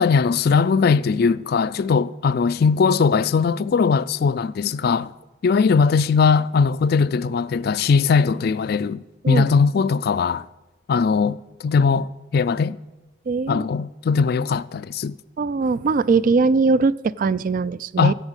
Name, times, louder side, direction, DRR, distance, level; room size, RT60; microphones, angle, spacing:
voice 1, 0.0-5.1 5.4-10.5 10.9-12.8 13.5-15.2 18.0-18.1, left 5 dB, 50° left, 0.3 m, -20 dB
voice 2, 13.3-13.7 15.4-18.1, right 4 dB, 45° right, 0.3 m, -20 dB
14.5 x 8.0 x 8.1 m
head